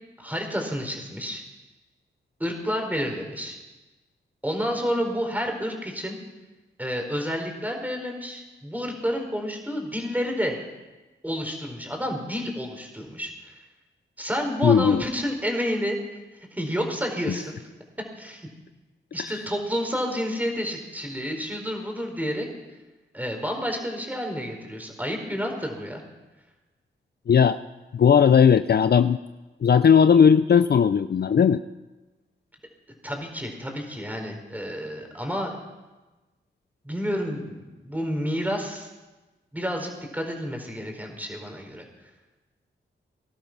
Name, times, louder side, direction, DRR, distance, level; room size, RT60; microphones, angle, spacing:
voice 1, 0.2-1.4 2.4-3.6 4.4-6.2 6.8-10.5 11.2-13.5 14.2-16.0 16.5-17.6 18.2-18.5 19.1-22.5 23.1-26.0 33.0-35.5 36.8-38.9 39.5-41.8, equal, 10° right, 2 dB, 4.4 m, -30 dB
voice 2, 14.6-15.0 19.2-19.3 27.3-27.6 27.9-29.2 29.6-31.6, left 7 dB, 55° left, 13 dB, 0.5 m, -17 dB
20.0 x 12.0 x 6.1 m, 1.1 s
cardioid pair, 55°, 20 cm